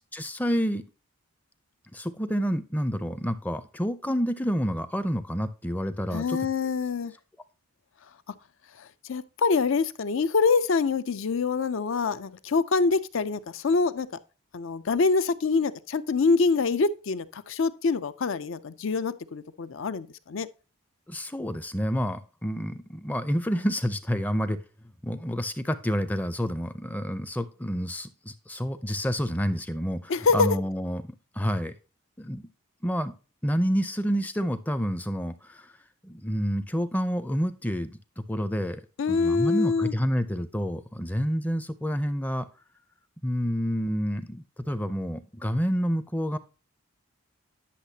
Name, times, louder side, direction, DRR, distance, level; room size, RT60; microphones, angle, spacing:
voice 1, 0.1-0.8 1.9-6.4 21.1-24.6 25.0-31.7 32.2-32.4 32.8-33.1 33.4-35.7 36.0-38.8 39.1-42.5 43.2-46.4, equal, 10° left, 0.5 m, -29 dB
voice 2, 6.1-7.1 8.8-14.1 14.5-20.5 30.1-30.5 39.0-39.9, left 4 dB, 65° left, 0.5 m, -25 dB
10.0 x 6.4 x 2.8 m
head